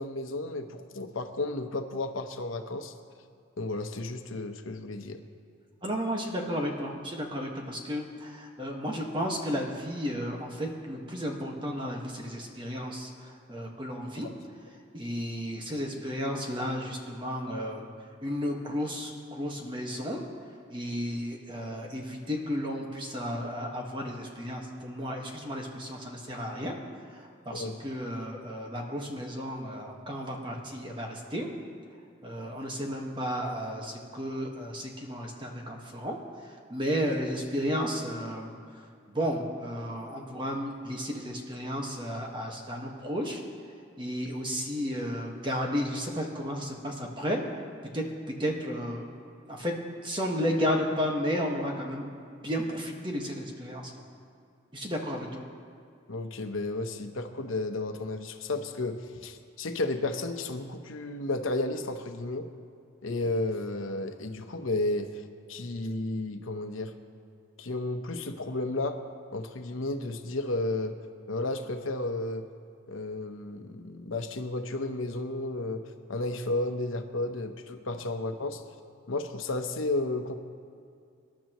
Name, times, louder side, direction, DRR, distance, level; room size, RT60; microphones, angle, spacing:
voice 1, 0.0-2.9 3.6-5.2 27.5-27.8 56.1-62.5 63.0-65.2 65.5-66.9 67.6-69.0 69.3-70.9 71.3-72.5 72.9-78.6 79.1-80.3, left 2 dB, 85° left, 6 dB, 0.9 m, -32 dB
voice 2, 5.8-14.3 14.9-17.9 18.2-20.2 20.7-26.8 27.1-31.5 32.2-38.5 39.1-43.4 44.0-47.4 47.9-49.1 49.5-49.7 50.0-52.1 52.4-53.9 54.7-55.4, equal, 25° right, 0 dB, 1.5 m, -33 dB
25.5 x 11.5 x 3.1 m, 2.4 s
head